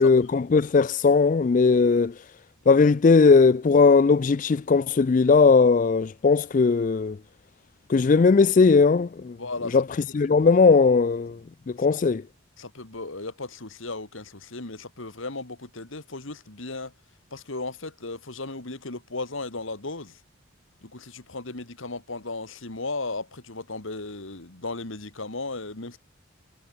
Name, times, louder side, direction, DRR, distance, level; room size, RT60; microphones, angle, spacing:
voice 1, 0.0-2.3 2.7-7.2 7.9-9.4 9.7-11.4 11.7-12.2, left 4 dB, 35° left, 0.3 m, -19 dB
voice 2, 9.4-9.8 12.6-16.9 17.3-20.2 20.8-26.0, left 3 dB, 70° left, 2.3 m, -35 dB
head